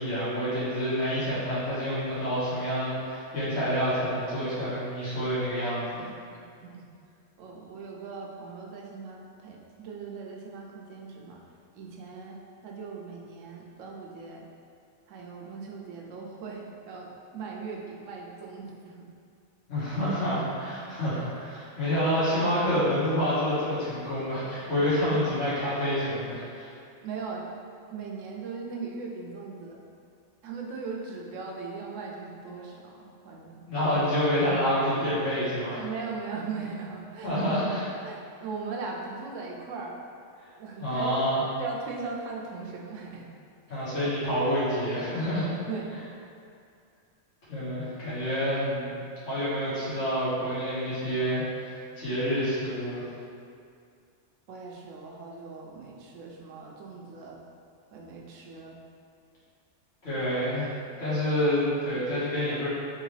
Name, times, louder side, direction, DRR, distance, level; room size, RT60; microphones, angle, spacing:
voice 1, 0.0-6.0 19.7-26.7 33.7-35.8 37.2-37.9 40.8-41.4 43.7-45.5 47.5-49.0 49.2-53.0 60.0-62.7, equal, 75° left, -12 dB, 1.7 m, -28 dB
voice 2, 7.4-11.4 11.7-14.4 15.1-19.1 27.0-27.5 27.9-29.8 30.4-33.7 35.7-37.3 38.0-40.0 40.6-41.2 41.6-43.3 45.7-46.1 54.5-57.4 57.9-58.8, right 4 dB, 85° right, -1 dB, 1.0 m, -39 dB
3.7 x 3.0 x 3.1 m, 2.3 s
omnidirectional pair, 1.3 m